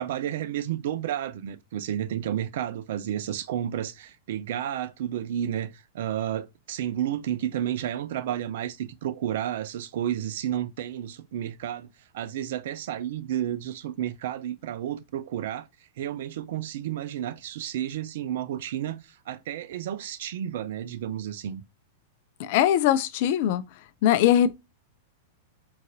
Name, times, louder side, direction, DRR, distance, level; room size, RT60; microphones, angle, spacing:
voice 1, 0.0-11.9 12.1-15.7 16.0-21.6, right 11 dB, 60° right, 0.4 m, -31 dB
voice 2, 22.4-23.6 24.0-24.5, left 11 dB, 55° left, 0.4 m, -21 dB
3.8 x 2.5 x 2.7 m
figure-of-eight pair, 100°, 0 cm